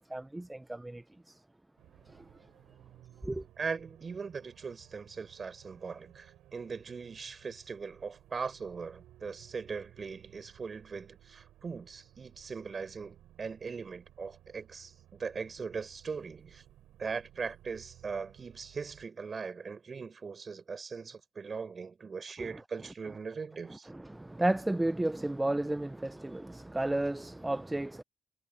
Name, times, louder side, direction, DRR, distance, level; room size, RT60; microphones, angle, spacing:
voice 1, 0.0-1.4 2.1-2.3 3.2-3.5 22.4-22.6 23.7-28.0, right 1 dB, 10° right, 0.4 m, -33 dB
sound 1, 1.8-19.1, right 13 dB, 85° right, 6.9 m, -59 dB
voice 2, 3.6-16.6 17.0-23.9, right 5 dB, 40° right, 6.8 m, -40 dB
cardioid pair, 90°, 0 cm